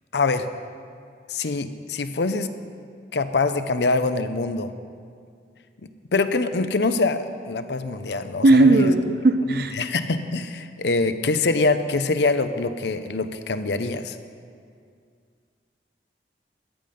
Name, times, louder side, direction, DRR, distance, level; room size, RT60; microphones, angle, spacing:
voice 1, 0.1-0.5 1.3-2.5 3.1-4.7 6.1-8.9 9.7-14.2, left 3 dB, 75° left, 10 dB, 0.7 m, -24 dB
voice 2, 8.4-9.7, right 2 dB, 55° right, 9 dB, 0.7 m, -17 dB
14.0 x 9.5 x 5.2 m, 2.2 s
head